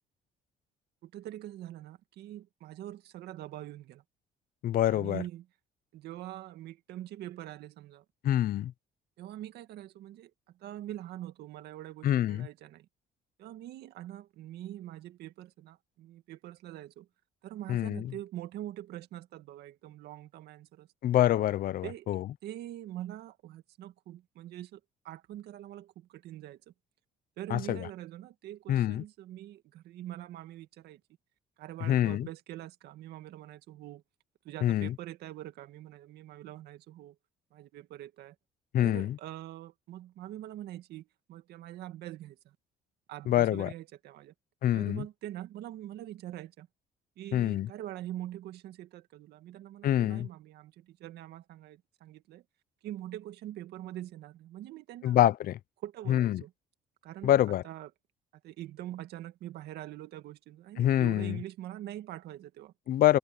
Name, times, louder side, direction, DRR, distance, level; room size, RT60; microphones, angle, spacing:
voice 1, 1.0-4.0 4.9-5.5 5.9-8.0 9.2-10.3 10.6-12.9 13.4-17.1 17.4-21.1 21.8-22.1 22.4-26.6 27.4-31.0 31.6-34.0 34.4-37.2 37.5-38.4 38.8-42.6 43.1-44.3 44.7-46.7 47.2-52.4 52.8-55.2 55.8-56.5 57.0-57.9 58.4-62.7, right 13 dB, 75° right, 2.0 m, -44 dB
voice 2, 4.6-5.2 8.2-8.7 12.0-12.5 17.7-18.0 21.0-22.2 27.5-27.8 28.7-29.0 31.9-32.3 34.6-34.9 38.7-39.1 43.3-43.7 44.6-45.0 47.3-47.7 49.8-50.3 55.0-55.6 56.1-56.4 57.2-57.6 60.8-61.4 62.9-63.2, left 12 dB, 60° left, 0.8 m, -26 dB
cardioid pair, 110°, 17 cm